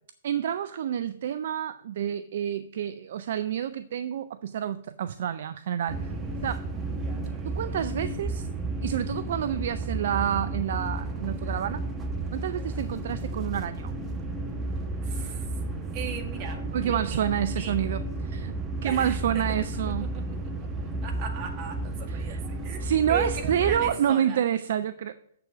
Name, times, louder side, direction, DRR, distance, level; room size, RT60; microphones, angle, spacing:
voice 1, 0.2-6.0 6.4-6.6 7.4-8.5 8.8-11.8 12.3-13.9 16.7-18.5 18.8-20.1 22.1-22.4 22.8-25.2, right 9 dB, 55° right, 13 dB, 0.4 m, -28 dB
sound 1, 5.9-23.9, right 2 dB, 15° right, 1.1 m, -32 dB
voice 2, 15.0-15.6 15.9-17.2 17.5-17.7 18.8-22.8 23.1-24.4, right 6 dB, 35° right, 3 dB, 1.8 m, -38 dB
7.5 x 6.8 x 5.9 m, 0.68 s
figure-of-eight pair, 115°, 0 cm